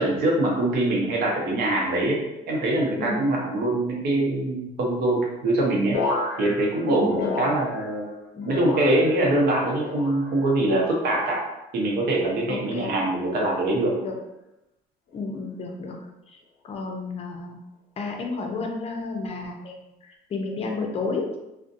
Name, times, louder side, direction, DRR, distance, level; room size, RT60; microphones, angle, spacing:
voice 1, 0.0-6.0 6.4-8.1 8.4-11.4 11.7-13.9, right 1 dB, 70° right, -2 dB, 0.7 m, -23 dB
sound 1, 5.9-8.2 8.4-9.3 9.8-10.5 11.1-11.6 12.4-12.8 13.8-14.1, left 3 dB, 85° left, 0.5 m, -32 dB
voice 2, 6.9-7.4 8.3-8.6 12.5-12.9 14.0-14.1 15.1-16.0 16.3-16.4 16.6-17.6 18.0-21.4, left 3 dB, 35° left, 2 dB, 0.5 m, -31 dB
2.5 x 2.1 x 2.5 m, 0.94 s
cardioid pair, 110°, 17 cm